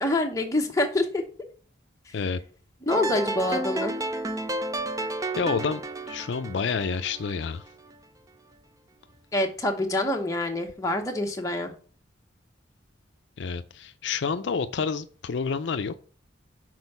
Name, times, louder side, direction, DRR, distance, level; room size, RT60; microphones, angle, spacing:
voice 1, 0.0-1.2 2.9-4.0 9.3-11.7, left 1 dB, 15° left, 2 dB, 0.9 m, -26 dB
sound 1, 2.9-8.0, right 2 dB, 20° right, 0.4 m, -32 dB
voice 2, 5.4-5.8 6.1-7.6 13.4-16.0, left 5 dB, 70° left, 10 dB, 0.4 m, -29 dB
6.3 x 4.4 x 5.4 m, 0.41 s
head